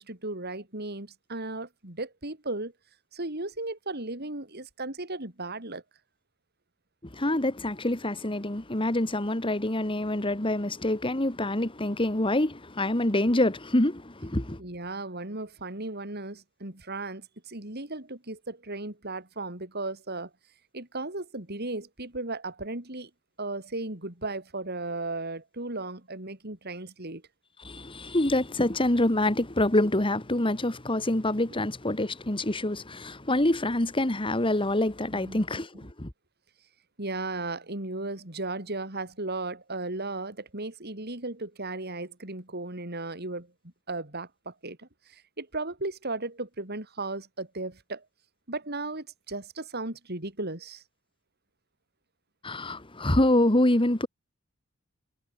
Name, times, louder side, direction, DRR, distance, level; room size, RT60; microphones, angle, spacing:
voice 1, 0.0-2.7 3.1-5.8 14.6-20.3 20.7-23.1 23.4-27.2 35.1-35.4 37.0-43.5 43.9-48.0 48.5-50.8, right 2 dB, 50° right, 4.8 m, -36 dB
voice 2, 7.1-14.6 27.6-36.1 52.4-54.1, left 1 dB, 25° left, 2.0 m, -26 dB
head